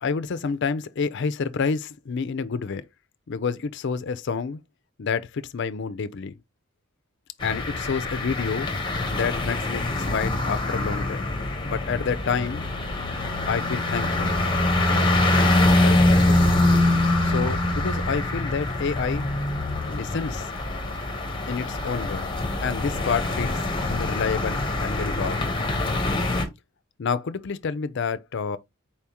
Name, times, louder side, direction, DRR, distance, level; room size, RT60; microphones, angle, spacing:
voice 1, 0.0-2.8 3.3-4.6 5.0-6.4 7.4-8.7 9.1-11.3 11.6-12.6 13.4-14.4 15.8-16.0 17.2-19.3 19.9-20.5 21.5-22.3 22.6-25.4 27.0-28.6, left 5 dB, 55° left, 0.4 m, -28 dB
sound 1, 7.4-26.4, left 2 dB, 25° left, 0.9 m, -24 dB
4.5 x 3.5 x 2.8 m
head